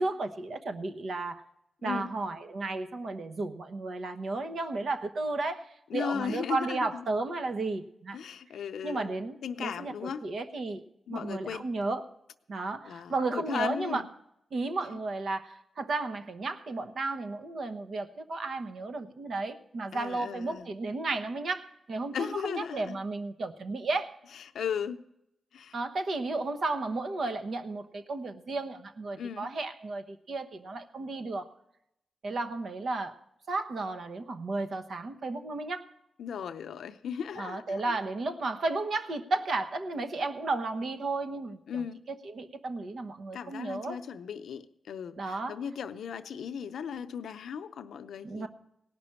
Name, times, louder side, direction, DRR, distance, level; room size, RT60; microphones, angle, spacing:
voice 1, 0.0-1.4 1.8-5.7 5.9-8.2 8.8-10.8 11.1-12.0 12.5-14.0 14.5-24.1 25.7-31.5 32.2-33.2 33.5-35.9 37.4-44.0 45.2-45.6 48.2-48.5, right 3 dB, 70° right, 7 dB, 1.0 m, -33 dB
voice 2, 1.8-2.1 5.9-7.0 8.1-9.2 9.4-10.3 11.1-11.7 12.8-14.1 14.9-15.0 19.9-20.7 22.1-23.0 24.3-25.0 25.5-25.8 29.2-29.5 36.2-38.0 41.7-42.0 43.3-48.5, left 7 dB, 85° left, 10 dB, 0.6 m, -37 dB
17.5 x 6.0 x 9.9 m, 0.82 s
cardioid pair, 60°, 0 cm